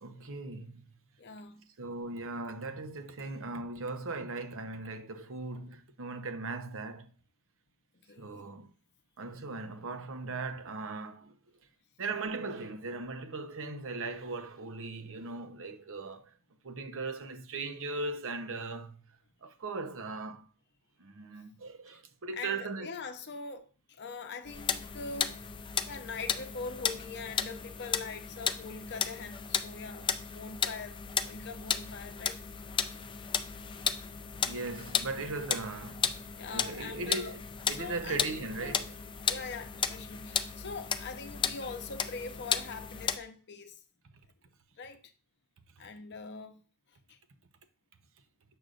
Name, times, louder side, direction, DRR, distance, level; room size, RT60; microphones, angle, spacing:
voice 1, 0.0-0.9 1.8-7.1 8.2-8.7 9.2-11.3 12.0-16.3 16.6-20.5 21.0-22.9 34.4-36.1 36.5-37.4 37.7-38.9, right 3 dB, 65° right, 0.8 m, -38 dB
voice 2, 1.2-1.7 8.0-8.5 22.3-25.4 25.9-32.4 36.4-37.4 37.7-38.8 39.3-43.7 44.8-45.0 45.8-46.6 47.1-47.2, left 4 dB, 50° left, 0.8 m, -43 dB
sound 1, 24.5-43.2, left 7 dB, 20° left, 0.4 m, -34 dB
7.9 x 6.4 x 2.5 m
head